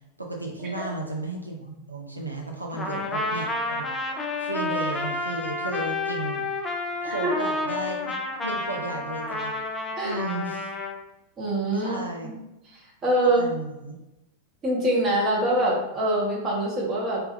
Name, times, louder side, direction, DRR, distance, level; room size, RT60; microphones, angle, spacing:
voice 1, 0.2-3.9 4.4-6.4 7.0-8.1 8.4-9.5 10.0-10.7 11.8-12.3 13.2-14.0, right 2 dB, 85° right, 0 dB, 0.3 m, -34 dB
Trumpet, 2.8-11.0, left 2 dB, 20° left, 0.3 m, -30 dB
voice 2, 11.4-12.0 12.2-12.4 13.0-13.5 14.6-17.2, right 1 dB, 25° right, -4 dB, 0.9 m, -24 dB
2.3 x 2.2 x 2.9 m, 0.93 s
figure-of-eight pair, 90°, 0 cm